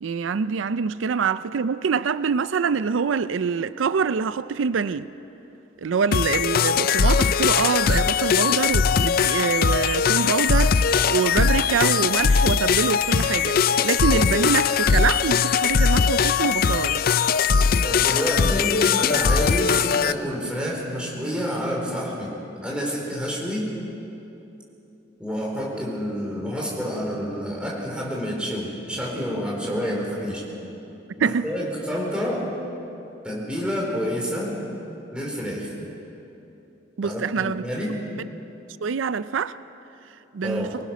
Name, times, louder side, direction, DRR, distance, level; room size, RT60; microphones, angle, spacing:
voice 1, 0.0-5.1 5.8-17.0 31.2-31.5 37.0-37.6 38.8-39.5 40.3-40.7, right 6 dB, 90° right, 0.4 m, -25 dB
sound 1, 6.1-20.1, left 6 dB, 50° left, 0.4 m, -20 dB
voice 2, 17.8-22.3 22.6-23.7 25.2-30.4 31.2-32.5 33.2-34.6 35.1-35.7 37.0-38.0 40.4-40.8, equal, 5° right, 4.5 m, -28 dB
25.0 x 19.5 x 6.2 m
head